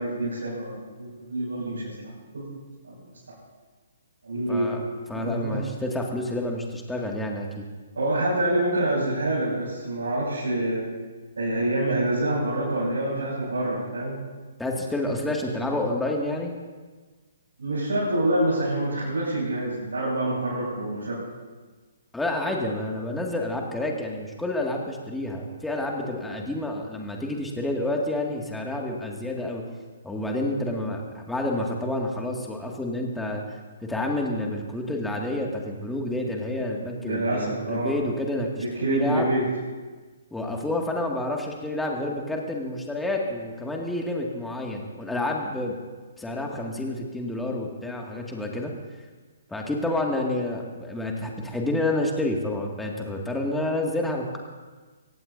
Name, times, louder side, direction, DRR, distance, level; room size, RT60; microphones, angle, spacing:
voice 1, 0.0-1.9 2.3-2.5 2.8-3.0 4.2-4.7 5.1-5.6 8.0-10.9 11.4-14.2 17.6-21.2 37.0-38.0 38.6-39.4, right 1 dB, 70° right, -8 dB, 6.4 m, -26 dB
voice 2, 4.5-4.8 5.1-7.7 14.6-16.6 22.1-29.6 30.0-33.4 33.8-39.3 40.3-45.8 46.2-48.7 49.5-54.4, left 1 dB, 5° left, 0 dB, 2.1 m, -29 dB
24.0 x 18.0 x 2.7 m, 1.4 s
figure-of-eight pair, 125°, 0 cm